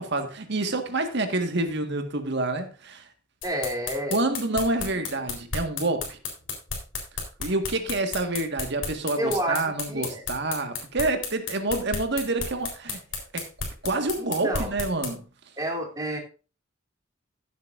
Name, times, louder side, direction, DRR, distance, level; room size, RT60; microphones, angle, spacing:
voice 1, 0.0-3.0 4.1-6.2 7.4-13.0 13.3-13.4 13.8-15.2, right 2 dB, 60° right, 1.6 m, -27 dB
sound 1, 3.4-15.1, left 5 dB, 65° left, 3.8 m, -32 dB
voice 2, 3.4-4.1 9.2-10.2 14.2-14.7 15.6-16.2, right 1 dB, 20° right, 3.0 m, -29 dB
15.5 x 8.0 x 2.6 m
head